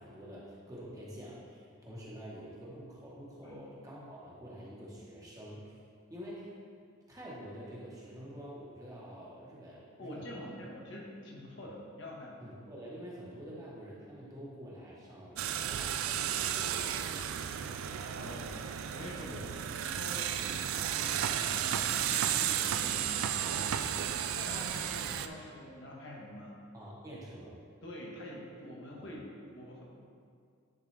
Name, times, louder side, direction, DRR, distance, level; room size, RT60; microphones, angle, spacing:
voice 1, 0.0-5.7 6.1-6.6 7.1-10.5 11.6-11.7 12.4-17.7 19.2-19.5 26.7-27.6 29.0-29.1, equal, 15° right, -6 dB, 1.0 m, -47 dB
voice 2, 10.0-12.4 17.9-19.4 19.8-26.6 27.8-29.8, left 1 dB, 60° left, -3 dB, 1.1 m, -46 dB
sound 1, 15.4-25.3, right 9 dB, 80° right, 0.3 m, -33 dB
10.5 x 3.8 x 3.3 m, 2.2 s
head